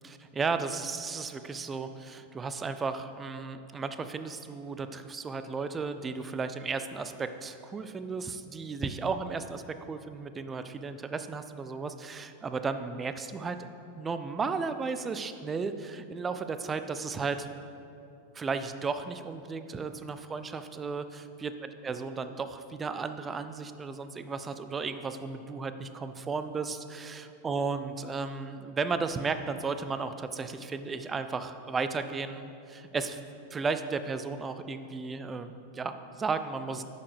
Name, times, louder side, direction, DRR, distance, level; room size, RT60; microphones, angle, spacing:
voice 1, 0.0-9.6 9.9-13.6 14.0-17.5 18.3-33.2 33.5-36.8, right 4 dB, 20° right, 10 dB, 0.4 m, -34 dB
10.5 x 6.6 x 3.3 m, 2.6 s
figure-of-eight pair, 90°, 0 cm